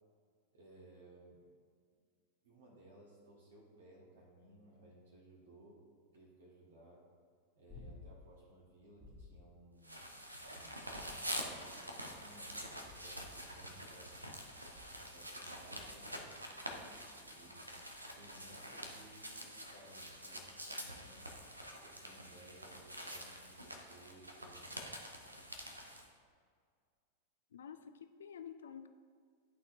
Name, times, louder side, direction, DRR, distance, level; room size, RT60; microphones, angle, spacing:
voice 1, 0.5-1.5 2.4-5.8 6.1-7.0 7.5-10.0 10.4-14.3 15.0-17.8 18.1-21.3 21.8-25.2, right 1 dB, 65° right, -3 dB, 1.4 m, -60 dB
sound 1, 7.7-8.3 9.0-9.5 10.8-11.6 12.8-13.3 14.7-15.2 17.5-17.6, left 3 dB, ahead, 0.9 m, -55 dB
sound 2, 9.8-26.1, equal, 85° right, 0.7 m, -47 dB
voice 2, 27.5-28.9, left 8 dB, 65° left, 9 dB, 0.3 m, -50 dB
11.5 x 4.2 x 2.6 m, 2.1 s
figure-of-eight pair, 90°, 0 cm